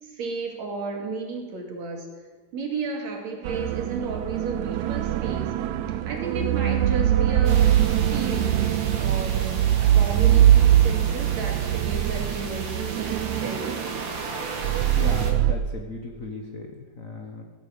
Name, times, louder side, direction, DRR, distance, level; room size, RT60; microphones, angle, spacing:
voice 1, 0.0-2.1 2.5-5.5 6.0-7.7 8.0-8.7 9.0-13.8, right 3 dB, 65° right, 1 dB, 3.5 m, -33 dB
sound 1, 3.4-15.5, right 11 dB, 80° right, 2.0 m, -22 dB
sound 2, 7.4-15.3, right 4 dB, 45° right, 2.1 m, -36 dB
voice 2, 14.9-17.4, left 3 dB, 55° left, 3 dB, 0.9 m, -36 dB
15.5 x 9.0 x 8.7 m, 1.4 s
omnidirectional pair, 3.5 m